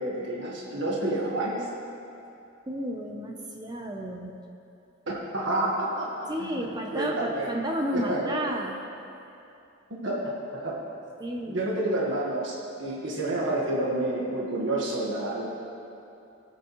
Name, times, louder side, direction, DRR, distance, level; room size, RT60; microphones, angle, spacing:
voice 1, 0.0-1.6 5.1-7.5 7.9-8.3 9.9-10.8 11.5-15.5, right 1 dB, 65° right, -3 dB, 1.5 m, -29 dB
voice 2, 2.7-4.4 6.3-8.8 11.2-11.6, equal, 20° right, 2 dB, 0.7 m, -32 dB
18.5 x 8.8 x 3.1 m, 2.8 s
head